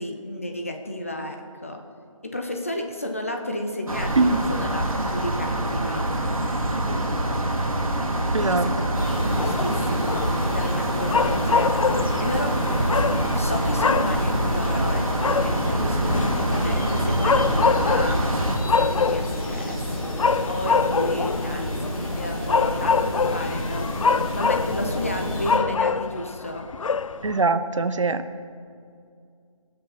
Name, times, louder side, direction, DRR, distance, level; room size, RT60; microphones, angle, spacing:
voice 1, 0.0-1.4 1.6-1.8 2.2-6.1 8.2-10.2 10.5-12.5 13.3-21.9 22.2-26.7, left 1 dB, 25° left, 3 dB, 0.6 m, -32 dB
sound 1, 3.9-18.6, right 1 dB, 90° right, 1.9 m, -25 dB
voice 2, 4.1-4.5 4.9-5.0 6.7-7.0 8.3-8.7 13.0-13.1 27.2-28.2, right 3 dB, 65° right, 11 dB, 0.6 m, -23 dB
sound 2, 8.9-25.6, left 1 dB, 90° left, 3.1 m, -30 dB
sound 3, 9.4-27.4, left 5 dB, 70° left, 0.4 m, -26 dB
18.5 x 6.5 x 4.1 m, 2.3 s
figure-of-eight pair, 175°, 18 cm